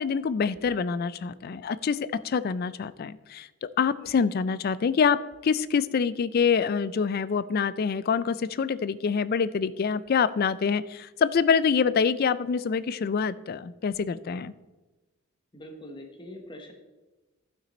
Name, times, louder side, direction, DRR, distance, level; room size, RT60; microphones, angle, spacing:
voice 1, 0.0-14.5, left 6 dB, 45° left, 16 dB, 0.3 m, -26 dB
voice 2, 15.5-16.7, left 1 dB, 20° left, 3 dB, 1.1 m, -43 dB
11.5 x 6.0 x 4.2 m, 1.1 s
head